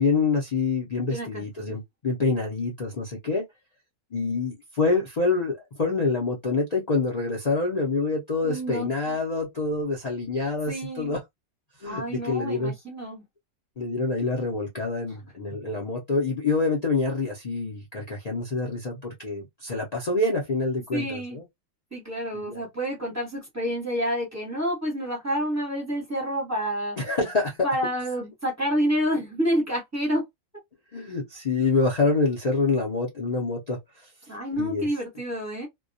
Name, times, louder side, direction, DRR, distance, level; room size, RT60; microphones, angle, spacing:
voice 1, 0.0-3.5 4.1-11.2 11.8-12.7 13.8-21.4 22.3-22.6 27.0-27.6 30.9-34.1 34.6-34.9, left 3 dB, 55° left, 0.4 m, -26 dB
voice 2, 1.1-1.4 8.4-9.2 10.7-11.2 11.8-13.2 15.1-15.2 20.9-21.4 21.9-27.0 27.6-30.2 34.3-35.7, equal, 15° right, 0.8 m, -28 dB
2.2 x 2.2 x 2.6 m
omnidirectional pair, 1.5 m